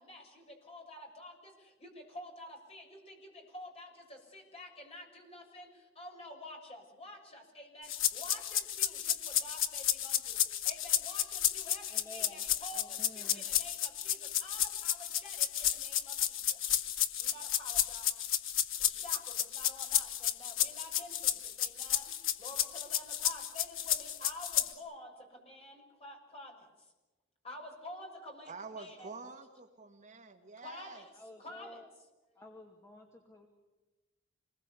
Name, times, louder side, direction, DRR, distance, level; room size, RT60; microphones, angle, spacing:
voice 1, 0.7-1.3 1.8-1.9 2.1-3.2 3.5-3.9 4.3-5.7 6.0-9.1 9.4-10.3 10.6-12.8 13.2-14.2 14.4-15.0 15.2-15.5 15.8-16.0 17.3-18.0 18.9-19.2 19.5-21.1 21.6-22.0 22.4-25.1 25.5-25.7 26.0-26.5 27.4-28.5 28.8-29.1 30.6-30.9 31.4-31.8, left 1 dB, 30° left, 1 dB, 6.6 m, -49 dB
sound 1, 7.9-24.7, left 11 dB, 90° left, 1.8 m, -32 dB
voice 2, 11.8-12.4 12.7-13.4 31.1-31.9 32.4-33.5, left 1 dB, 15° left, 2 dB, 2.4 m, -52 dB
voice 3, 28.5-31.0, right 4 dB, 40° right, 4 dB, 1.9 m, -47 dB
27.5 x 21.0 x 8.4 m, 1.1 s
head